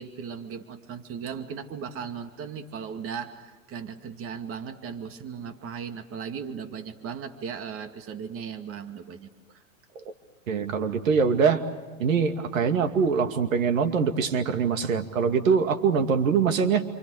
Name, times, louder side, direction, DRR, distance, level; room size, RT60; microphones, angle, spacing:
voice 1, 0.0-9.6, right 6 dB, 35° right, 7 dB, 2.4 m, -37 dB
voice 2, 10.5-11.6 12.0-16.9, right 6 dB, 80° right, 7 dB, 2.5 m, -23 dB
28.0 x 27.5 x 6.5 m, 1.3 s
hypercardioid pair, 115°, 39 cm